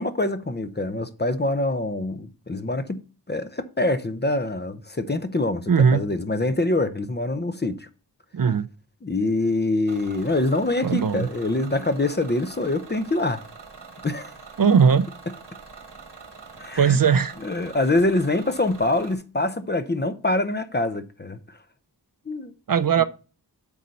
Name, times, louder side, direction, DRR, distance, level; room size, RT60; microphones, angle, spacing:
voice 1, 0.0-3.0 3.3-7.9 9.0-13.4 14.0-14.3 16.6-17.0 17.4-21.4 22.3-22.5 23.0-23.1, left 2 dB, 25° left, 0.7 m, -25 dB
voice 2, 5.7-6.0 8.3-8.7 10.8-11.3 14.6-15.0 16.8-17.3 22.7-23.0, right 6 dB, 55° right, 0.5 m, -18 dB
Bus / Engine, 9.9-19.1, right 5 dB, 85° right, 1.6 m, -44 dB
8.4 x 6.4 x 4.1 m
wide cardioid pair, 80°, 41 cm